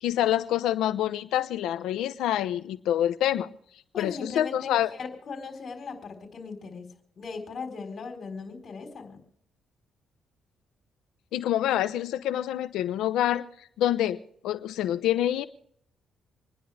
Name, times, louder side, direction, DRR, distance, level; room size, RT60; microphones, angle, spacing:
voice 1, 0.0-3.5 4.0-4.9 11.3-13.4 13.8-15.5, left 12 dB, 85° left, 13 dB, 0.9 m, -26 dB
voice 2, 3.9-6.8 7.2-9.2, left 4 dB, 50° left, 5 dB, 4.1 m, -38 dB
27.5 x 10.5 x 3.5 m, 0.67 s
cardioid pair, 90°, 0 cm